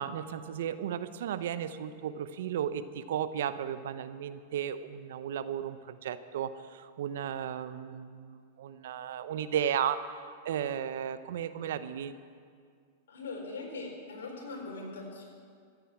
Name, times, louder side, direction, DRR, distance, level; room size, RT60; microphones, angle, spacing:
voice 1, 0.0-10.1 10.4-12.2, right 9 dB, 70° right, 13 dB, 0.8 m, -34 dB
voice 2, 13.1-15.2, left 3 dB, 80° left, -1 dB, 4.4 m, -41 dB
14.0 x 9.3 x 8.8 m, 2.1 s
hypercardioid pair, 110°, 0 cm